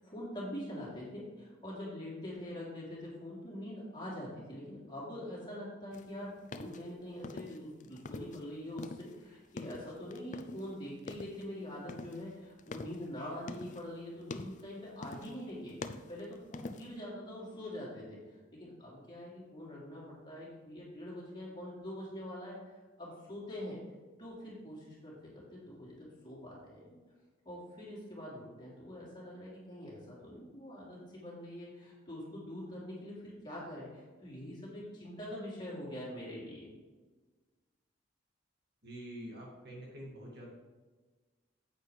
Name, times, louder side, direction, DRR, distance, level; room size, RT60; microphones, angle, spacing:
voice 1, 0.0-23.8 24.2-27.0 27.4-36.7, left 1 dB, 20° left, -6 dB, 3.1 m, -44 dB
sound 1, 5.9-8.5 8.7-10.7 11.0-11.5 11.9-13.9 14.2-14.7 15.0-15.4 15.7-17.0, left 3 dB, 35° left, 0.4 m, -45 dB
voice 2, 38.8-40.5, equal, 50° right, -2 dB, 2.1 m, -46 dB
9.6 x 8.2 x 3.4 m, 1.3 s
head